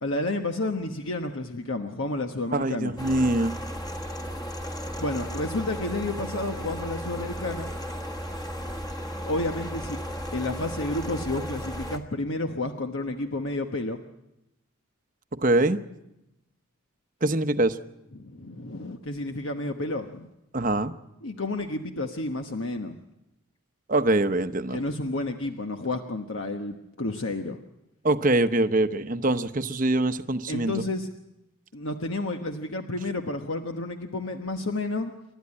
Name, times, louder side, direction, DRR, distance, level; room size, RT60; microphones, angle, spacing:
voice 1, 0.0-2.9 5.0-7.7 9.2-10.0 10.3-14.0 18.1-20.3 21.2-23.0 24.7-27.6 30.5-31.1 31.7-35.1, left 2 dB, 65° left, 5 dB, 1.2 m, -31 dB
voice 2, 2.5-3.5 15.3-15.8 17.2-17.8 20.5-20.9 23.9-24.8 28.0-30.7, right 2 dB, 40° right, 10 dB, 0.9 m, -23 dB
sound 1, 3.0-12.0, equal, 20° left, 1.5 m, -35 dB
28.5 x 12.5 x 9.8 m, 0.90 s
head